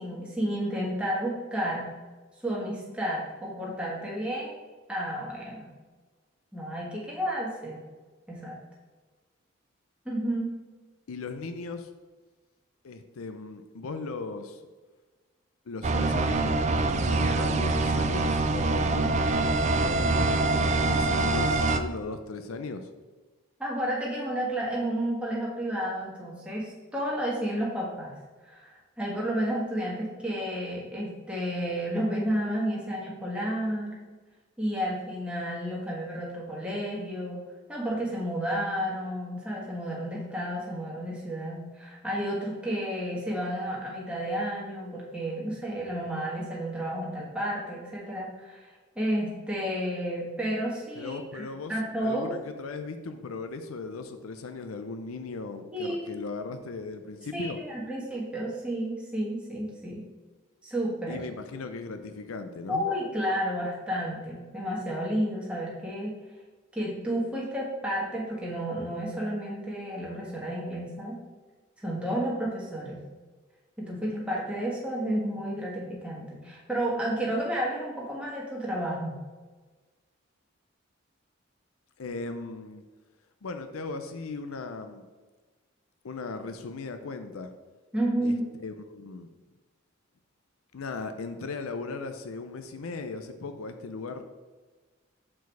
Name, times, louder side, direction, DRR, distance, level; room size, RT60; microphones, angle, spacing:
voice 1, 0.0-1.9 2.4-4.5 4.9-5.6 6.5-7.8 8.3-8.6 10.0-10.5 23.6-28.1 28.5-34.0 34.6-37.4 37.7-51.4 51.7-52.3 55.7-56.1 57.3-60.0 60.6-61.2 62.7-66.2 66.7-71.2 71.8-73.0 73.8-79.2 87.9-88.5, equal, 5° right, -5 dB, 1.5 m, -31 dB
voice 2, 11.1-11.9 12.8-14.6 15.7-22.9 51.0-51.7 52.0-57.6 61.1-62.8 82.0-82.8 83.4-85.1 86.0-87.5 88.2-88.4 88.6-89.3 90.7-94.2, left 3 dB, 80° left, 8 dB, 0.5 m, -37 dB
sound 1, 15.8-21.8, right 3 dB, 35° right, 0.3 m, -25 dB
6.2 x 4.8 x 4.6 m, 1.3 s
head